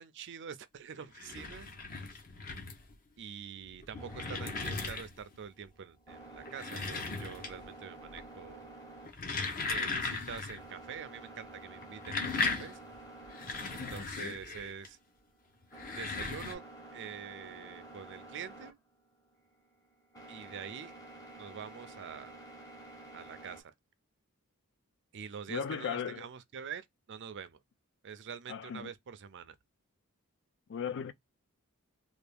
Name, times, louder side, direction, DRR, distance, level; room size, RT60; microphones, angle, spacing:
voice 1, 0.0-1.7 3.2-8.6 9.7-12.8 13.7-15.0 16.0-16.6 16.9-18.8 20.3-20.9 21.3-22.4 23.1-23.7 25.1-27.6 28.0-29.6, right 7 dB, 55° right, 0.5 m, -45 dB
sound 1, 1.0-3.0 3.6-5.3 6.3-7.8 8.0-8.5 9.0-10.6 10.9-11.0 11.8-14.9 15.6-16.5, left 4 dB, 40° left, 0.8 m, -37 dB
sound 2, 4.0-23.6, right 2 dB, 15° left, 1.0 m, -51 dB
voice 2, 13.6-14.4 25.5-26.3 28.5-28.9 30.7-31.1, left 7 dB, 55° left, 0.4 m, -38 dB
3.4 x 2.4 x 3.3 m
head